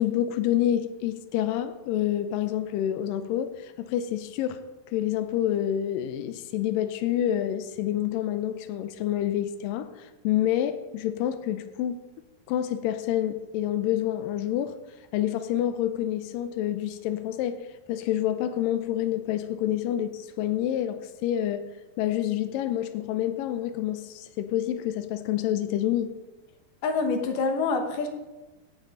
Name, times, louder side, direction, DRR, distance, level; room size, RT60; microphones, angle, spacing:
voice 1, 0.0-4.6 4.9-12.0 12.5-14.8 15.1-26.1, left 11 dB, 85° left, 2.0 m, -28 dB
voice 2, 26.8-28.1, left 4 dB, 65° left, 2.5 m, -26 dB
17.0 x 9.9 x 3.9 m
omnidirectional pair, 4.6 m